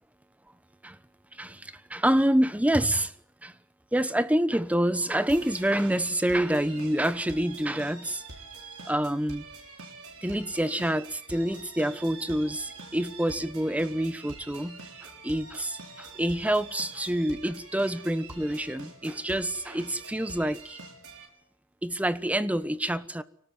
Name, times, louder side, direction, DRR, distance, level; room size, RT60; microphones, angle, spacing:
voice 1, 1.3-3.1 3.4-3.5 3.9-8.2 8.9-9.4 10.2-20.8 21.8-23.2, right 1 dB, 5° right, 1.0 m, -27 dB
sound 1, 5.3-21.3, right 3 dB, 90° right, 6.3 m, -45 dB
25.0 x 18.5 x 9.5 m
head